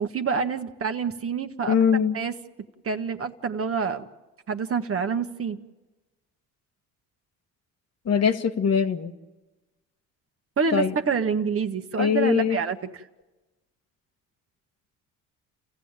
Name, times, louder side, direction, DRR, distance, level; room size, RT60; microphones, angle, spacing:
voice 1, 0.0-1.8 2.1-2.3 2.8-4.1 4.5-5.6 10.6-12.8, right 6 dB, 40° right, 7 dB, 1.5 m, -27 dB
voice 2, 1.7-2.2 8.0-9.1 10.7-10.9 12.0-12.6, left 7 dB, 45° left, 8 dB, 1.6 m, -22 dB
29.5 x 15.0 x 9.0 m, 1.1 s
supercardioid pair, 65°, 35 cm